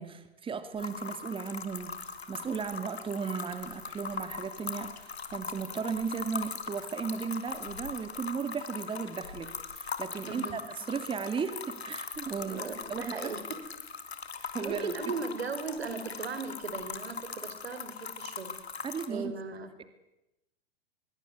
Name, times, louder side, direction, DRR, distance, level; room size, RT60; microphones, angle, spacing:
voice 1, 0.0-2.0 2.3-12.6 12.9-13.3 14.5-14.9 18.8-19.3, right 6 dB, 15° right, 10 dB, 2.5 m, -36 dB
sound 1, 0.8-19.1, left 5 dB, 85° left, 3.3 m, -40 dB
voice 2, 12.4-13.6 14.4-18.5 19.1-19.7, right 5 dB, 80° right, 10 dB, 4.7 m, -37 dB
24.5 x 22.5 x 9.6 m, 0.93 s
hypercardioid pair, 105°, 31 cm